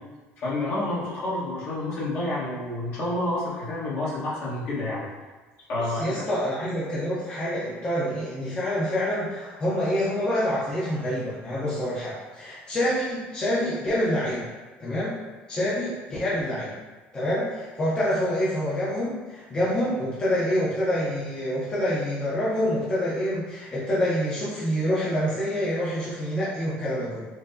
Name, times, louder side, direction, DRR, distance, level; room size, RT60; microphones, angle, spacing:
voice 1, 0.4-5.1 5.7-6.2, left 2 dB, 50° left, -7 dB, 1.1 m, -29 dB
voice 2, 5.8-14.5 14.8-15.2 15.5-16.7 17.1-27.3, equal, 20° left, -9 dB, 0.6 m, -27 dB
4.4 x 2.0 x 2.6 m, 1.3 s
cardioid pair, 145°, 5 cm